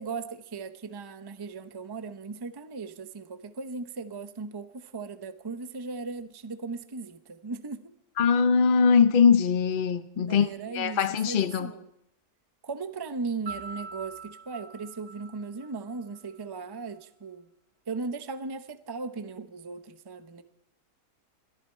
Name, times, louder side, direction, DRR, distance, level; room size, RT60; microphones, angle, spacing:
voice 1, 0.0-7.9 10.1-11.9 12.6-17.5 17.9-20.4, right 4 dB, 25° right, 0.5 m, -37 dB
voice 2, 8.2-11.7, left 6 dB, 50° left, 0.6 m, -22 dB
Piano, 13.4-16.3, right 4 dB, 45° right, 5.0 m, -43 dB
22.0 x 14.5 x 4.5 m
omnidirectional pair, 1.7 m